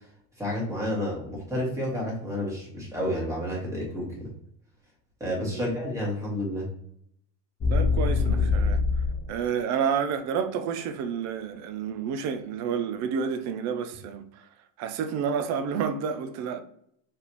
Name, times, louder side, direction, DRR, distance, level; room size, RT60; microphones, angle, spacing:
voice 1, 0.4-4.3 5.2-6.7, left 1 dB, 10° right, 1.8 m, -30 dB
sound 1, 7.6-9.3, left 4 dB, 20° left, 0.5 m, -24 dB
voice 2, 7.7-8.8 9.3-14.5 14.8-16.6, right 7 dB, 40° right, 0.6 m, -29 dB
4.6 x 3.5 x 2.9 m
supercardioid pair, 145°, 40 cm